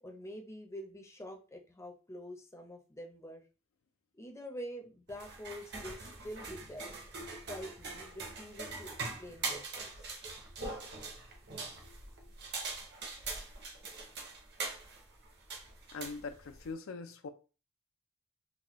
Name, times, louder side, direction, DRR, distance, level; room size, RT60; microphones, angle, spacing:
voice 1, 0.0-3.4 4.1-7.0 7.5-10.1, equal, 15° left, 0.6 m, -46 dB
sound 1, 5.1-16.7, right 3 dB, 55° right, 0.9 m, -43 dB
voice 2, 15.9-17.3, left 4 dB, 80° left, 0.4 m, -42 dB
4.0 x 2.2 x 3.0 m
head